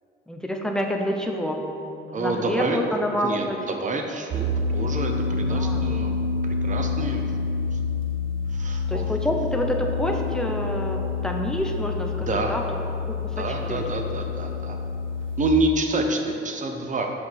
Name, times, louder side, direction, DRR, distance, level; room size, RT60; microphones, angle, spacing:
voice 1, 0.3-1.6 2.1-3.6 5.3-5.9 8.9-12.7 13.1-13.9, equal, 5° left, 2 dB, 0.8 m, -28 dB
voice 2, 2.1-2.8 3.2-6.1 6.4-7.3 7.7-7.8 8.5-9.1 12.2-12.5 13.4-14.8 15.4-17.1, right 2 dB, 40° right, 4 dB, 0.9 m, -27 dB
sound 1, 4.3-15.5, left 4 dB, 75° right, 0.7 m, -27 dB
5.9 x 5.0 x 5.8 m, 2.7 s
cardioid pair, 90°, 20 cm